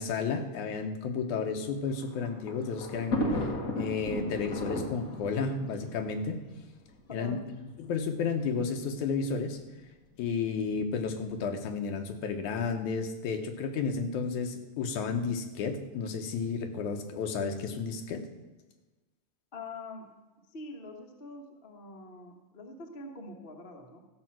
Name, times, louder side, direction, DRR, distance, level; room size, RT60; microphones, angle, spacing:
voice 1, 0.0-3.2 3.8-6.4 7.1-7.4 7.8-9.6 10.2-18.2, left 5 dB, 80° left, 5 dB, 2.5 m, -32 dB
Thunder, 1.7-7.0 7.8-7.9 8.1-8.2 9.3-9.6, left 1 dB, 45° left, 1.2 m, -35 dB
voice 2, 7.1-7.4 19.5-20.1 20.5-24.0, left 2 dB, 60° left, 2 dB, 0.5 m, -44 dB
14.0 x 5.7 x 7.6 m, 1.2 s
omnidirectional pair, 3.4 m